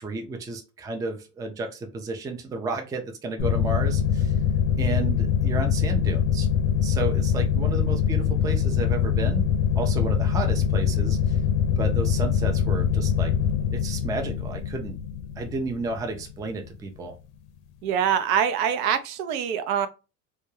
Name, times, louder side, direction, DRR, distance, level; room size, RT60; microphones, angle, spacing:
voice 1, 0.0-4.4 4.8-6.5 6.8-9.4 9.8-11.4 11.8-13.3 13.7-15.0 15.4-17.2, right 3 dB, 10° right, 0.3 m, -32 dB
sound 1, 3.4-16.6, left 8 dB, 65° left, 0.5 m, -23 dB
voice 2, 17.8-19.9, right 8 dB, 70° right, 0.6 m, -24 dB
2.2 x 2.2 x 3.0 m
hypercardioid pair, 80°, 43 cm